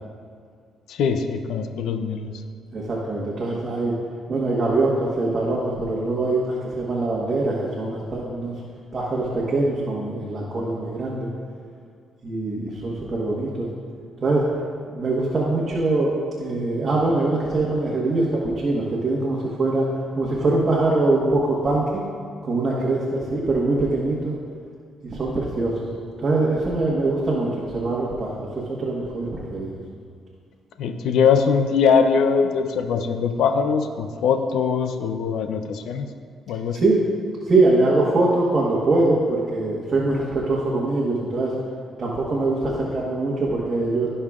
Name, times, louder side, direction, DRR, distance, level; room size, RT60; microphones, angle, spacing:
voice 1, 0.9-2.4 30.8-36.1 36.5-36.8, left 6 dB, 80° left, 7 dB, 0.5 m, -21 dB
voice 2, 2.7-3.9 4.3-8.5 8.9-11.3 12.2-13.7 14.2-14.5 14.9-19.9 20.1-22.0 22.4-24.3 25.0-25.9 26.2-29.8 36.7-37.0 37.5-41.5 42.0-44.1, right 2 dB, 35° right, -5 dB, 1.4 m, -23 dB
16.5 x 5.6 x 2.4 m, 2.1 s
cardioid pair, 90°, 0 cm